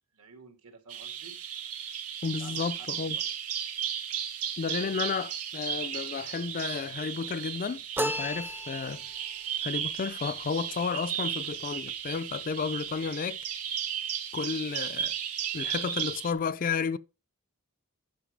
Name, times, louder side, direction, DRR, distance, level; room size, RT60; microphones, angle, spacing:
voice 1, 0.1-1.4 2.4-3.3, right 4 dB, 70° right, 2.3 m, -52 dB
Bird vocalization bird call bird song, 0.9-16.3, right 9 dB, 90° right, 1.6 m, -35 dB
voice 2, 2.2-3.2 4.6-9.0 9.6-13.4 14.3-15.1 15.5-17.0, left 5 dB, 40° left, 0.4 m, -32 dB
sound 1, 8.0-9.2, equal, 10° right, 0.5 m, -33 dB
10.0 x 5.4 x 5.1 m
head